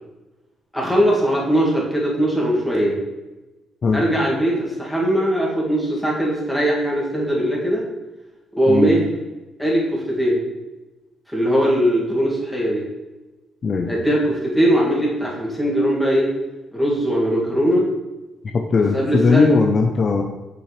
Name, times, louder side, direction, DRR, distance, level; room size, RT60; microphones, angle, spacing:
voice 1, 0.7-3.0 3.9-7.9 8.5-9.1 9.6-10.4 11.3-12.8 13.9-16.3 16.7-17.9 18.9-19.5, equal, 5° left, -4 dB, 2.1 m, -20 dB
voice 2, 18.5-20.2, left 4 dB, 45° left, 4 dB, 0.5 m, -18 dB
6.2 x 6.0 x 3.2 m, 1.1 s
cardioid pair, 90°, 0 cm